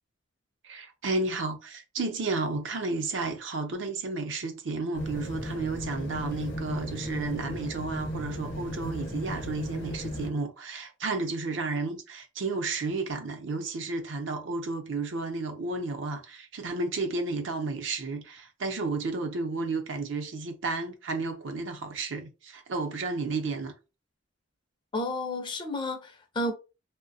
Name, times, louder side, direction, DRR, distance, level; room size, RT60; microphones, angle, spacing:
voice 1, 0.6-23.7, right 3 dB, 70° right, 0.6 m, -32 dB
sound 1, 4.9-10.3, equal, 65° left, 0.8 m, -35 dB
voice 2, 24.9-26.5, left 1 dB, 25° left, 0.4 m, -31 dB
2.7 x 2.1 x 2.6 m
head